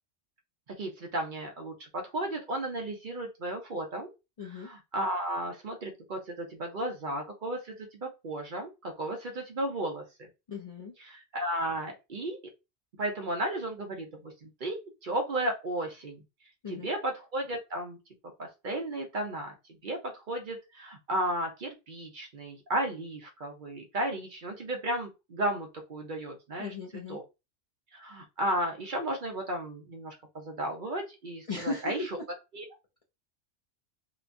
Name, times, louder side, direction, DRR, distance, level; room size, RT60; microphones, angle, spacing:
voice 1, 0.8-4.1 4.5-10.0 11.0-12.4 13.0-14.8 15.0-16.2 16.7-18.0 18.4-19.5 19.8-20.0 20.3-26.7 27.1-27.2 27.9-32.1 32.5-32.6, right 1 dB, 50° right, 2 dB, 0.7 m, -34 dB
voice 2, 4.4-4.7 10.5-10.9 16.6-16.9 26.6-27.2 31.5-32.0, left 3 dB, 45° left, -3 dB, 0.5 m, -37 dB
3.0 x 2.2 x 2.5 m, 0.25 s
omnidirectional pair, 1.2 m